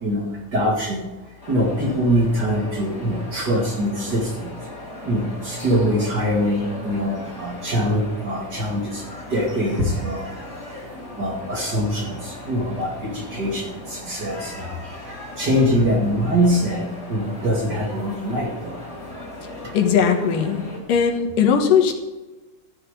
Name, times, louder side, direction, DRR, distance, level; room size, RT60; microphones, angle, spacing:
voice 1, 0.5-1.1 1.5-4.5 5.1-9.0 9.3-10.3 11.2-14.7 15.4-18.7, equal, 35° right, -2 dB, 2.5 m, -23 dB
sound 1, 1.4-20.8, left 1 dB, 20° left, 3.1 m, -38 dB
voice 2, 19.7-20.6 20.9-21.9, left 7 dB, 80° left, 5 dB, 3.0 m, -18 dB
14.0 x 6.5 x 8.2 m, 1.1 s
omnidirectional pair, 3.8 m